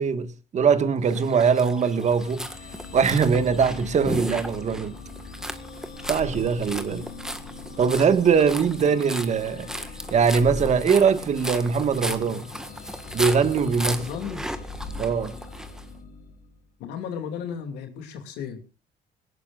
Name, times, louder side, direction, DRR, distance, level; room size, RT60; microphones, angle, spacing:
voice 1, 0.0-2.5 2.9-4.9 6.1-7.1 7.8-9.7 10.1-12.5 13.1-14.1 15.0-15.3, right 6 dB, 45° right, 1.7 m, -22 dB
sound 1, 1.1-15.8, equal, 5° right, 1.7 m, -36 dB
sound 2, 1.9-16.6, left 3 dB, 55° left, 7.2 m, -40 dB
voice 2, 13.6-14.5 16.8-18.6, left 7 dB, 85° left, 2.6 m, -35 dB
20.0 x 18.5 x 2.5 m
cardioid pair, 110°, 17 cm